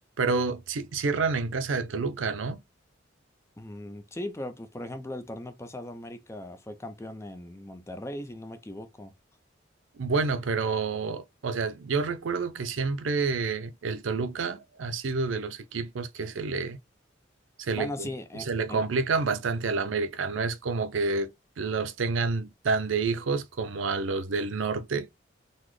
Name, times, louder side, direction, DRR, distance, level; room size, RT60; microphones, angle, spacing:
voice 1, 0.2-2.6 10.0-16.8 17.6-18.1 18.5-21.3 21.6-25.1, right 4 dB, 85° right, 0.5 m, -29 dB
voice 2, 3.6-9.1 17.8-18.8, left 1 dB, 15° left, 0.4 m, -38 dB
4.0 x 2.1 x 3.1 m
head